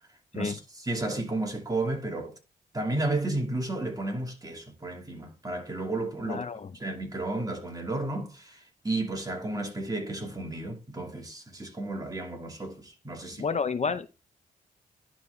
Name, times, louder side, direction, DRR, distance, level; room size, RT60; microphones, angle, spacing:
voice 1, 0.8-2.3 2.7-6.4 6.8-13.4, right 2 dB, 20° right, 2.5 m, -32 dB
voice 2, 6.3-6.8 13.3-14.1, left 5 dB, 40° left, 0.6 m, -30 dB
11.0 x 4.1 x 3.3 m
cardioid pair, 60°, 17 cm